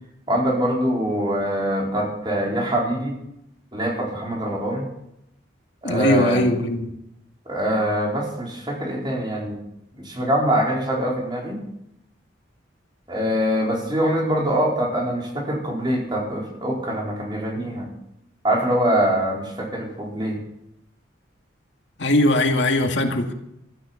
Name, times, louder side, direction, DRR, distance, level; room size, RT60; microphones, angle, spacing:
voice 1, 0.3-3.1 3.7-4.8 5.8-6.4 7.5-9.6 10.0-11.6 13.1-17.9 18.4-20.4, right 1 dB, 25° right, -2 dB, 4.2 m, -24 dB
voice 2, 5.8-6.9 22.0-23.3, left 1 dB, 70° left, 4 dB, 2.1 m, -20 dB
15.0 x 12.5 x 7.2 m, 0.83 s
head